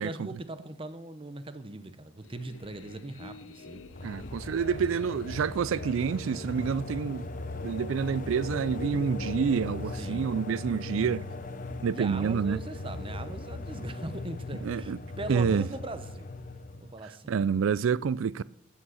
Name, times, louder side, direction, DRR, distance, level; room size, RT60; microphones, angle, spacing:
voice 1, 0.0-3.8 10.0-10.4 11.9-16.3 16.8-17.4, right 2 dB, 25° right, 0.8 m, -40 dB
sound 1, 2.2-9.8, left 3 dB, 75° left, 0.7 m, -45 dB
sound 2, 3.9-17.0, left 2 dB, 40° left, 0.8 m, -39 dB
voice 2, 4.0-7.3 7.6-11.3 11.8-12.6 14.6-15.0 15.3-15.7 17.0-18.4, right 6 dB, 75° right, 0.4 m, -28 dB
13.0 x 8.7 x 6.4 m
head